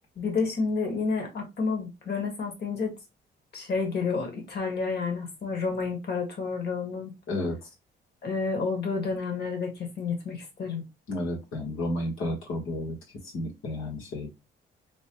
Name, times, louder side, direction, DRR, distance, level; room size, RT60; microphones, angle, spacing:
voice 1, 0.2-2.9 3.5-7.1 8.2-10.8, left 4 dB, 55° left, 1.7 m, -30 dB
voice 2, 7.3-7.7 11.1-13.0 13.3-14.3, left 1 dB, 90° left, 1.5 m, -31 dB
5.3 x 2.2 x 3.0 m
cardioid pair, 90°, 20 cm